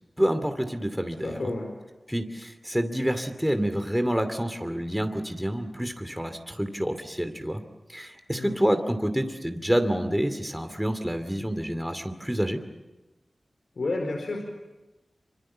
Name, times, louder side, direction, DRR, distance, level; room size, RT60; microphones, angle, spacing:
voice 1, 0.2-1.5 2.1-7.6 7.9-12.6, equal, 5° right, 8 dB, 2.5 m, -28 dB
voice 2, 1.2-1.7 8.3-8.6 13.8-14.4, left 2 dB, 80° left, 2 dB, 4.5 m, -30 dB
26.0 x 25.0 x 7.5 m, 1.1 s
wide cardioid pair, 55°, 0 cm